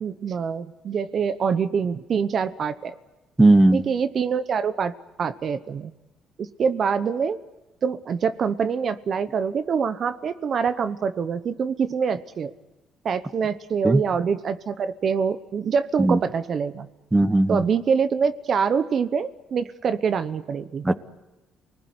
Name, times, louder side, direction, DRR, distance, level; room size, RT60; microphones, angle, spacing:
voice 1, 0.0-2.9 3.7-5.9 6.4-7.4 7.8-12.5 13.0-16.9 17.5-20.8, right 6 dB, 50° right, 12 dB, 1.0 m, -25 dB
voice 2, 3.4-3.8 13.8-14.0 16.0-16.2 17.1-17.6 20.8-20.9, right 2 dB, 15° right, 12 dB, 1.2 m, -17 dB
28.0 x 20.0 x 9.6 m, 1.1 s
cardioid pair, 110°, 0 cm